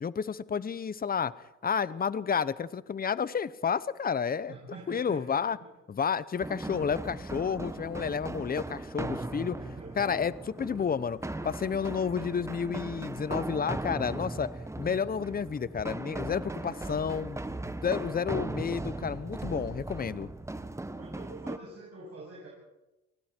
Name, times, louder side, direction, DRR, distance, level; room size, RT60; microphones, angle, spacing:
voice 1, 0.0-1.3 1.6-4.5 4.9-5.6 5.9-9.6 10.0-11.2 11.4-14.5 14.8-17.4 17.8-20.3, left 6 dB, 30° left, 17 dB, 0.8 m, -31 dB
voice 2, 4.5-5.7 9.6-10.2 16.5-17.2 20.9-22.5, right 3 dB, 55° right, -4 dB, 8.0 m, -46 dB
sound 1, 6.4-21.6, right 2 dB, 10° right, 1.1 m, -38 dB
29.0 x 20.0 x 4.5 m, 0.95 s
cardioid pair, 90°, 30 cm